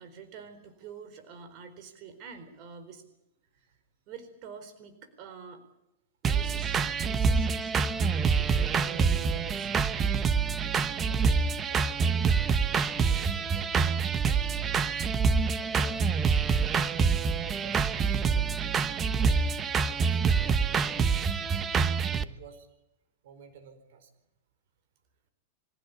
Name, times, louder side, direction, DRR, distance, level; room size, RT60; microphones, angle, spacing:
voice 1, 0.0-3.0 3.5-3.8 4.1-5.6 6.2-9.7, right 5 dB, 45° right, 8 dB, 4.4 m, -47 dB
sound 1, 6.2-22.2, right 5 dB, 25° right, 1.1 m, -26 dB
voice 2, 11.0-12.3 12.6-15.0 15.5-16.8 17.4-18.6 19.2-21.4 22.0-22.7 23.2-24.1, right 6 dB, 75° right, 9 dB, 4.5 m, -52 dB
24.5 x 16.5 x 8.5 m, 0.87 s
hypercardioid pair, 130°, 0 cm